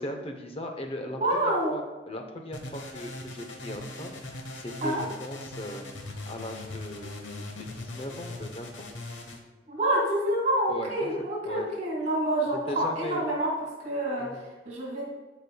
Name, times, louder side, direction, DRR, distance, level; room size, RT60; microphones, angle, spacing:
voice 1, 0.0-8.9 10.7-11.1 11.4-11.7 12.7-13.2 14.2-14.5, left 1 dB, 30° left, 4 dB, 0.8 m, -38 dB
voice 2, 1.2-1.8 4.8-5.0 9.7-13.5 13.8-14.3 14.7-15.1, right 1 dB, 35° right, -3 dB, 2.5 m, -27 dB
sound 1, 2.5-9.4, left 1 dB, 85° left, 1.0 m, -40 dB
14.5 x 5.1 x 2.3 m, 1.2 s
head